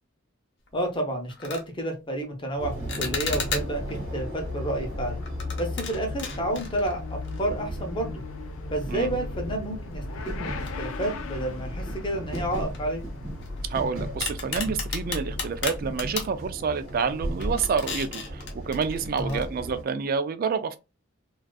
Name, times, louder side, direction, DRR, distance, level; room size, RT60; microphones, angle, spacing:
sound 1, 0.7-0.9 1.3-1.7 2.9-3.9 5.2-7.6 7.9-8.0 8.8-8.9 10.7-11.3 11.7-11.8 12.3-13.8 14.2-16.4 16.9-17.1 17.4-19.4, left 5 dB, 60° left, 0.7 m, -35 dB
voice 1, 0.7-5.2 5.6-8.2 8.7-13.0 19.2-19.4, right 1 dB, 25° left, 0.6 m, -30 dB
Motorcycle / Accelerating revving vroom, 2.6-16.3, left 3 dB, 90° left, 0.4 m, -37 dB
sound 2, 2.6-19.8, right 1 dB, 75° right, 1.0 m, -37 dB
voice 2, 13.7-20.8, right 5 dB, 45° right, 0.3 m, -28 dB
2.5 x 2.3 x 2.2 m
head